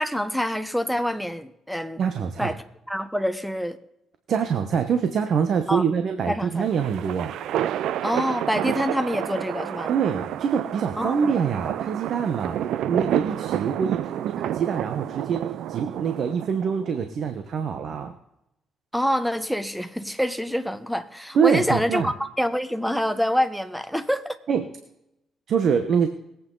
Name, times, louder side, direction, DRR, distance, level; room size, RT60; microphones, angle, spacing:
voice 1, 0.0-2.0 2.4-2.6 2.9-3.8 5.7-5.8 6.3-6.7 8.0-9.9 11.0-11.4 18.9-24.4, equal, ahead, 12 dB, 1.1 m, -26 dB
voice 2, 2.0-2.6 4.3-7.3 9.9-14.0 14.3-18.1 21.3-22.1 24.5-24.6 25.5-26.1, right 7 dB, 65° right, 7 dB, 1.1 m, -25 dB
sound 1, 6.5-17.0, right 11 dB, 80° right, 0.4 m, -29 dB
21.0 x 8.5 x 4.0 m, 0.83 s
cardioid pair, 90°, 0 cm